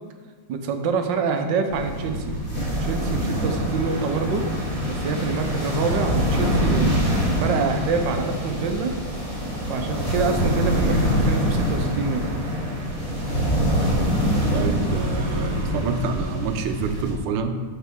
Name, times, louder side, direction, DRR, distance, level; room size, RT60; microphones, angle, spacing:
voice 1, 0.5-2.4 2.8-4.4 4.9-7.0 7.4-9.0 9.7-12.2, right 4 dB, 70° right, 5 dB, 1.3 m, -26 dB
sound 1, 1.7-17.1, equal, 40° left, 2.9 m, -24 dB
voice 2, 14.5-17.6, right 5 dB, 90° right, 7 dB, 1.5 m, -28 dB
12.5 x 4.5 x 3.5 m, 1.5 s
omnidirectional pair, 2.3 m